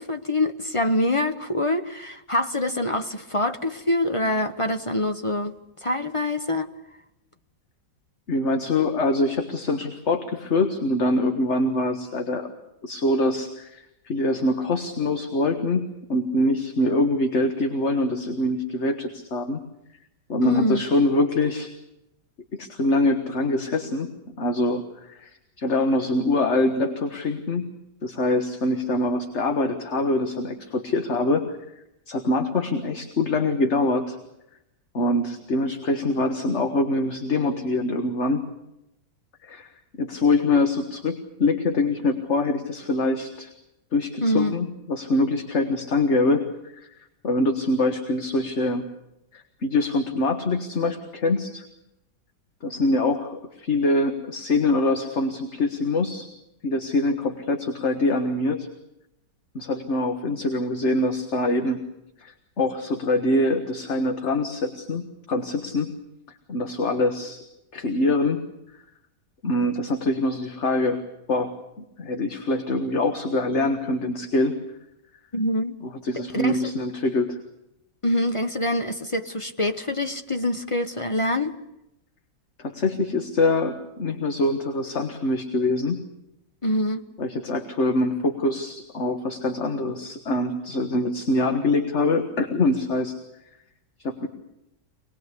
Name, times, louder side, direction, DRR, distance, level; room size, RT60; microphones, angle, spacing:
voice 1, 0.0-5.5 5.8-6.7 20.4-20.8 44.2-44.6 75.3-75.8 76.1-76.7 78.0-81.6 86.6-87.0, left 1 dB, 25° left, 0.7 m, -25 dB
voice 2, 8.3-12.5 12.8-19.6 20.3-21.7 22.6-24.1 24.4-25.3 25.6-27.7 28.0-31.5 32.1-34.2 34.9-38.4 39.4-39.7 40.0-43.5 43.9-46.5 46.7-46.9 47.2-48.8 49.3-51.6 52.6-56.3 56.6-58.7 59.6-61.8 62.2-65.9 66.5-67.4 67.7-68.4 69.4-71.0 71.3-71.5 72.0-74.6 76.0-77.4 82.6-86.0 87.2-93.2 94.0-94.3, left 2 dB, 40° left, 1.7 m, -24 dB
25.5 x 20.0 x 8.3 m
omnidirectional pair, 1.9 m